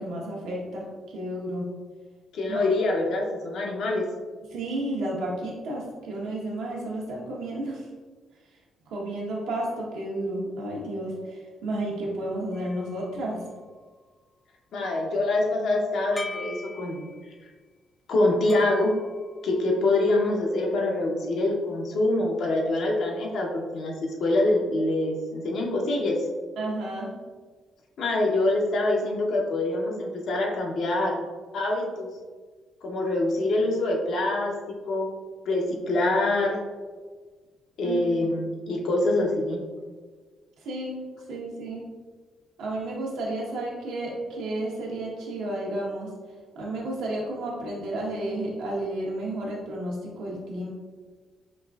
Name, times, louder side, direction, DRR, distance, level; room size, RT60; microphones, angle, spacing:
voice 1, 0.0-1.7 2.5-2.6 4.5-7.9 8.9-13.4 26.6-27.1 37.8-38.0 40.6-40.9 41.3-41.8 42.6-46.1 46.5-50.7, right 1 dB, 85° right, -3 dB, 0.9 m, -32 dB
voice 2, 2.3-4.0 14.7-17.1 18.1-18.9 19.4-26.2 28.0-31.2 31.5-32.1 32.8-34.5 34.9-35.1 35.4-36.6 37.8-39.6, left 2 dB, 70° left, 0 dB, 0.7 m, -25 dB
sound 1, 12.5-14.2 16.2-17.4 18.5-20.0, left 3 dB, 15° left, 0.4 m, -43 dB
5.1 x 2.5 x 2.3 m, 1.4 s
cardioid pair, 90°, 0 cm